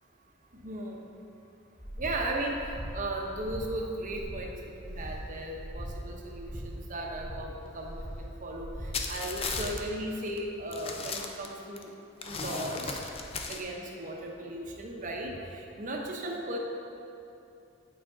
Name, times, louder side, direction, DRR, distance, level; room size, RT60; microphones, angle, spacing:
voice 1, 0.5-1.1 2.0-11.9 12.3-13.0 13.5-16.6, right 1 dB, 40° right, 0 dB, 0.8 m, -36 dB
Breathing, 1.8-2.2 2.5-2.9 3.3-3.6 4.0-4.4 4.8-5.1 5.5-5.9 6.3-6.6 7.0-7.4 7.8-8.2 8.5-8.9 9.3-9.7, equal, ahead, 1.5 m, -41 dB
sound 1, 8.9-9.8 10.3-10.4 10.7-11.8 12.2-13.6, left 4 dB, 30° left, 0.4 m, -36 dB
8.4 x 5.0 x 3.8 m, 2.8 s
head